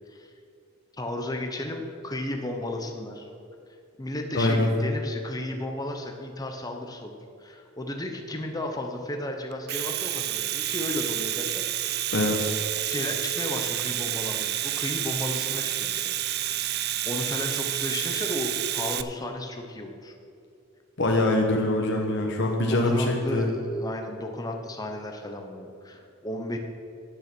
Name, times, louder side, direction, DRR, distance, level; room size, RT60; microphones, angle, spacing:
voice 1, 0.9-3.3 4.0-12.1 12.9-16.7 17.0-20.1 22.7-26.6, left 1 dB, 20° left, 3 dB, 0.9 m, -34 dB
voice 2, 4.3-4.7 12.1-12.5 21.0-23.5, left 1 dB, 60° left, 0 dB, 1.1 m, -24 dB
Domestic sounds home sounds, 9.5-19.0, right 13 dB, 50° right, 0.4 m, -29 dB
9.6 x 8.3 x 6.1 m, 2.5 s
head